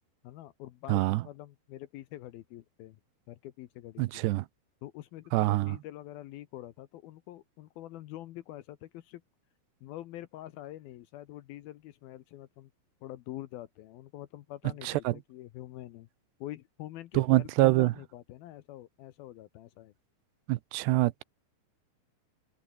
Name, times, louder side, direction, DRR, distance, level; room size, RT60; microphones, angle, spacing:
voice 1, 0.2-3.0 3.3-4.2 4.8-9.2 9.8-12.7 13.0-16.1 16.4-19.9, left 14 dB, 70° left, 2.5 m, -45 dB
voice 2, 0.9-1.2 4.0-4.5 5.3-5.8 14.8-15.1 17.1-17.9 20.5-21.2, right 19 dB, 85° right, 2.8 m, -25 dB
omnidirectional pair, 5.0 m